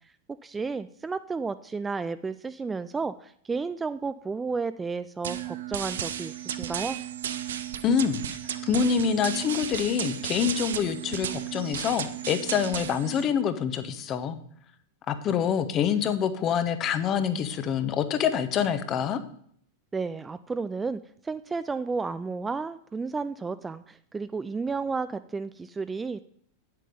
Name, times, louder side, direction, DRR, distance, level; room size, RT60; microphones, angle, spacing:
voice 1, 0.4-7.0 19.9-26.2, right 4 dB, 15° right, 13 dB, 0.3 m, -32 dB
sound 1, 5.2-13.2, right 10 dB, 60° right, 0.6 m, -34 dB
voice 2, 7.8-8.2 8.7-14.4 15.1-19.2, left 7 dB, 30° left, 11 dB, 0.9 m, -26 dB
9.1 x 7.8 x 5.2 m, 0.63 s
figure-of-eight pair, 90°, 0 cm